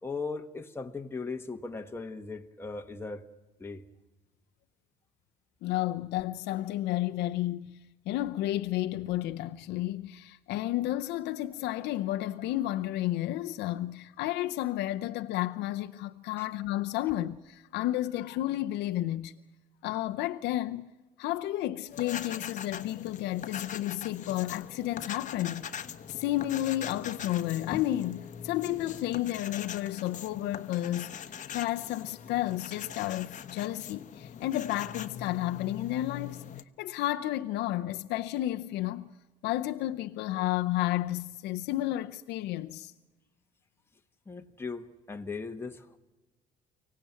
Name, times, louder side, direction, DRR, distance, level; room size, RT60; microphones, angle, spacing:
voice 1, 0.0-3.2 3.6-3.8 16.4-16.5 44.3-46.0, left 4 dB, 15° left, 1.3 m, -38 dB
voice 2, 5.6-7.8 8.1-19.3 19.8-20.9 21.2-25.7 26.1-36.4 36.8-39.1 39.4-42.9, left 14 dB, 85° left, 0.7 m, -32 dB
sound 1, 21.9-36.6, left 8 dB, 45° left, 1.0 m, -42 dB
24.5 x 17.5 x 9.1 m
cardioid pair, 110°, 17 cm